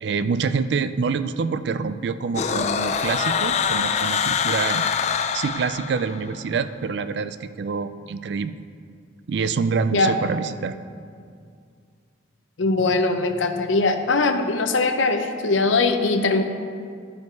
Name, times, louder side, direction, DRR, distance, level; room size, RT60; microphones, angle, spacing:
voice 1, 0.0-4.9 5.3-8.6 9.3-10.8, right 5 dB, 60° right, 12 dB, 0.3 m, -26 dB
sound 1, 2.3-6.3, left 6 dB, 35° left, 0.3 m, -24 dB
voice 2, 12.6-16.4, left 3 dB, 80° left, 7 dB, 0.6 m, -21 dB
11.5 x 5.2 x 4.5 m, 2.2 s
head